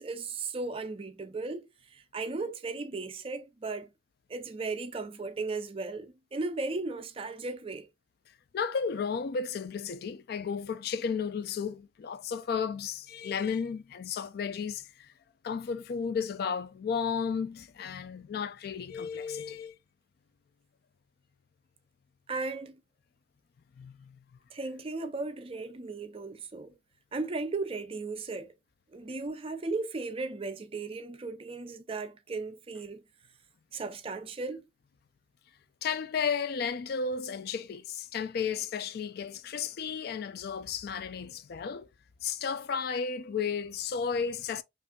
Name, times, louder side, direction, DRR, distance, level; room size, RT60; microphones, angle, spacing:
voice 1, 0.0-3.9 4.3-7.9 22.3-22.8 24.5-26.7 27.1-28.5 28.9-33.0 33.7-34.6, right 3 dB, 30° right, 0.4 m, -36 dB
voice 2, 8.5-15.1 15.4-19.8 23.8-24.2 35.8-41.9 42.2-44.6, left 6 dB, 55° left, 0.3 m, -33 dB
5.2 x 2.5 x 2.2 m
head